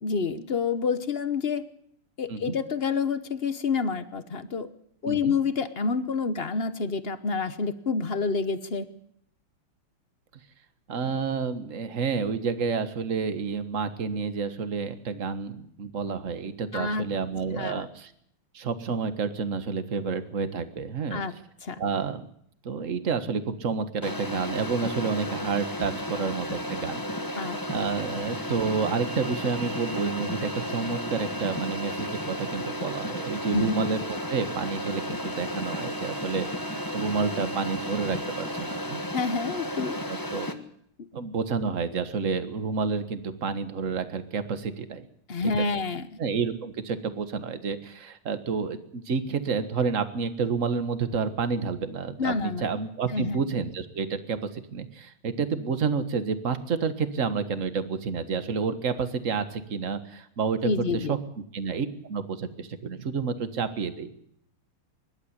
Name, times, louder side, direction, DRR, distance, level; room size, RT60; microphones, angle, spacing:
voice 1, 0.0-1.6 2.2-4.7 5.0-8.9 16.7-17.0 17.5-17.8 21.1-21.3 21.6-21.8 27.3-27.6 33.5-33.7 39.1-40.0 45.3-46.2 52.2-52.7 53.1-53.4 60.6-61.1, left 4 dB, 45° left, 12 dB, 0.8 m, -28 dB
voice 2, 10.9-18.1 18.5-21.2 21.8-22.3 22.6-27.4 27.7-36.7 36.9-39.0 40.1-40.5 41.1-45.1 45.4-45.5 46.2-61.2 61.5-64.1, right 5 dB, 40° right, 11 dB, 1.6 m, -29 dB
sound 1, 24.0-40.5, equal, 10° left, 1.1 m, -33 dB
23.5 x 12.0 x 9.8 m, 0.69 s
omnidirectional pair, 2.4 m